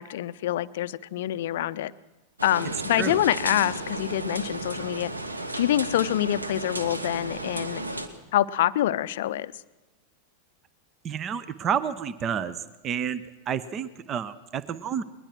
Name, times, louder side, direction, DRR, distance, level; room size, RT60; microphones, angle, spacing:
voice 1, 0.0-1.9 2.4-5.1 5.6-7.8 8.3-9.5, left 13 dB, 55° left, 16 dB, 0.6 m, -26 dB
sound 1, 2.4-8.1, right 1 dB, 80° right, 1.4 m, -33 dB
voice 2, 11.0-15.0, right 8 dB, 30° right, 17 dB, 0.8 m, -30 dB
21.0 x 20.5 x 6.1 m, 1.1 s
figure-of-eight pair, 90°, 0 cm